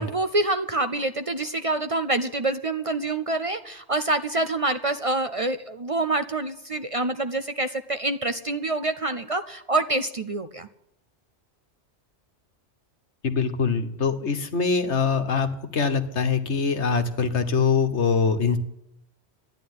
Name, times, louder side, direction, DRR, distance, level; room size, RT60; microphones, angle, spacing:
voice 1, 0.0-10.7, right 2 dB, 40° right, 10 dB, 0.6 m, -26 dB
voice 2, 13.2-18.6, left 5 dB, 80° left, 8 dB, 1.5 m, -23 dB
13.0 x 10.0 x 9.6 m, 0.80 s
omnidirectional pair, 1.1 m